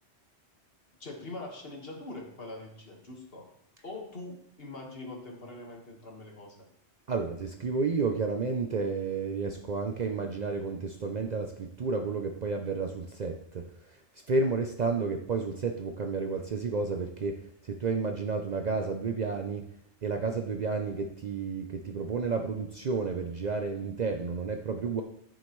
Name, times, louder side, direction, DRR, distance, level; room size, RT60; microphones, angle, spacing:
voice 1, 1.0-3.5 3.8-6.6, left 2 dB, 55° left, 0 dB, 1.9 m, -43 dB
voice 2, 7.1-13.7 14.3-19.7 20.0-25.0, right 4 dB, 50° right, 5 dB, 0.6 m, -31 dB
14.0 x 6.4 x 3.1 m, 0.74 s
omnidirectional pair, 1.2 m